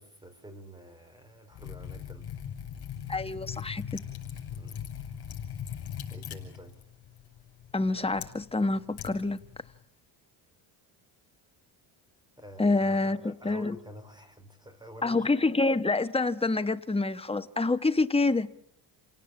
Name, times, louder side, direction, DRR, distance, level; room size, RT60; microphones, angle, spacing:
voice 1, 0.0-2.3 4.5-4.8 5.6-6.8 12.4-15.3, equal, 10° right, 4.5 m, -49 dB
Liquid, 1.5-9.8, left 9 dB, 50° left, 6.3 m, -41 dB
voice 2, 3.1-4.0 7.7-9.4 12.6-13.7 15.0-18.5, left 3 dB, 10° left, 1.1 m, -27 dB
28.5 x 17.5 x 8.7 m
cardioid pair, 105°, 50 cm